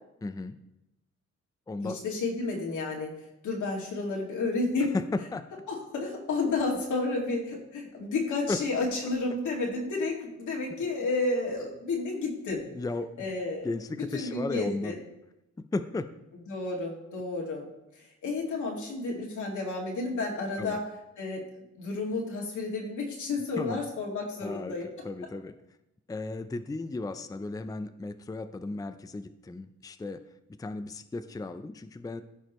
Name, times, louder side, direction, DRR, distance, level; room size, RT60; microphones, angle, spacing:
voice 1, 0.2-0.6 1.7-2.0 4.8-5.5 8.5-8.6 12.7-13.3 13.6-15.0 15.6-16.1 20.6-20.8 23.6-23.8 24.4-24.8 25.0-25.6 26.1-30.2 30.6-32.2, left 3 dB, 10° left, 10 dB, 0.5 m, -35 dB
voice 2, 1.8-3.1 3.4-4.9 5.7-12.6 13.2-13.7 14.1-14.9 16.5-17.7 18.2-20.8 21.2-21.4 21.8-24.9, left 3 dB, 80° left, -2 dB, 2.3 m, -31 dB
14.5 x 4.9 x 3.1 m, 0.89 s
cardioid pair, 85°, 29 cm